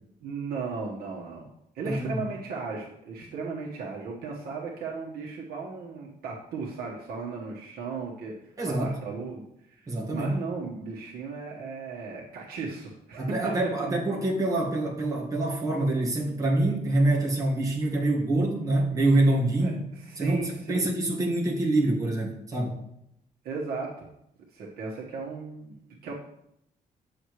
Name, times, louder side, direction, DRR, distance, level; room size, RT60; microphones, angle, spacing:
voice 1, 0.2-1.5 1.7-13.9 19.6-20.8 23.4-24.1 24.5-26.1, right 4 dB, 85° right, -2 dB, 1.4 m, -36 dB
voice 2, 1.8-2.2 8.6-9.0 9.9-10.3 13.2-19.8 20.2-22.8, right 2 dB, 20° right, -2 dB, 1.7 m, -26 dB
9.8 x 7.1 x 3.2 m, 0.79 s
cardioid pair, 175°, 15 cm